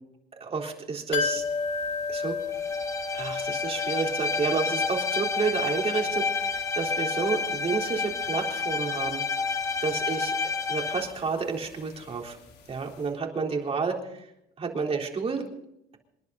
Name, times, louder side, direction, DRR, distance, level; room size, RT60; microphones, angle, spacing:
voice 1, 0.4-1.4 2.1-2.4 3.1-9.2 9.5-10.3 10.7-12.4 12.7-14.2 14.6-15.4, right 5 dB, 35° right, 1 dB, 3.7 m, -30 dB
sound 1, 1.1-12.7 13.0-13.1, left 5 dB, 70° left, 3.6 m, -36 dB
Bowed string instrument, 2.5-11.1, left 5 dB, 15° left, 1.3 m, -30 dB
27.0 x 11.0 x 4.1 m, 0.79 s
cardioid pair, 110°, 17 cm